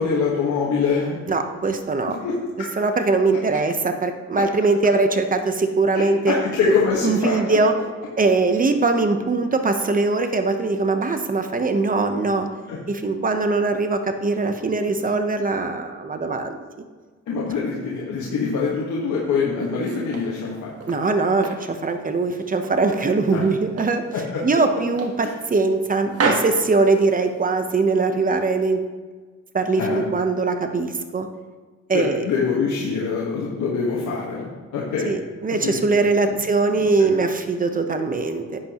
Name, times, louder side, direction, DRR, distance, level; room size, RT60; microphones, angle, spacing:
voice 1, 0.0-1.2 2.2-2.7 5.9-7.6 12.7-12.8 17.3-20.7 23.3-23.4 24.1-24.4 25.2-25.3 29.7-30.1 31.9-35.1 35.6-35.8 36.3-36.4 36.7-37.1, left 5 dB, 75° left, -5 dB, 1.7 m, -24 dB
voice 2, 1.3-2.2 2.8-6.3 6.7-6.8 7.0-7.7 8.2-12.5 12.9-16.6 20.9-24.0 24.4-28.8 29.5-31.3 31.9-32.2 35.0-38.6, right 3 dB, 30° right, 7 dB, 1.0 m, -21 dB
sound 1, 19.6-21.1 21.4-22.8 23.2-24.0 24.4-24.5 25.0-25.8 26.1-27.5, right 3 dB, 50° right, 1.6 m, -29 dB
11.0 x 8.3 x 3.1 m, 1.4 s
cardioid pair, 90°, 30 cm